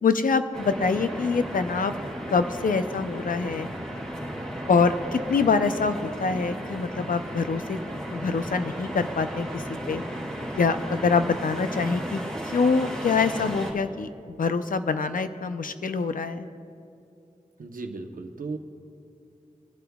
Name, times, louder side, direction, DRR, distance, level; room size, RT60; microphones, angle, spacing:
voice 1, 0.0-1.9 2.3-3.7 4.7-7.8 8.1-10.0 10.5-12.2 12.5-14.1 14.4-16.5, left 4 dB, 80° left, 10 dB, 0.6 m, -25 dB
sound 1, 0.5-13.7, equal, 5° left, 2.2 m, -35 dB
voice 2, 17.6-18.6, right 3 dB, 90° right, 4 dB, 0.9 m, -35 dB
21.5 x 11.5 x 2.3 m, 2.5 s
wide cardioid pair, 90°, 14 cm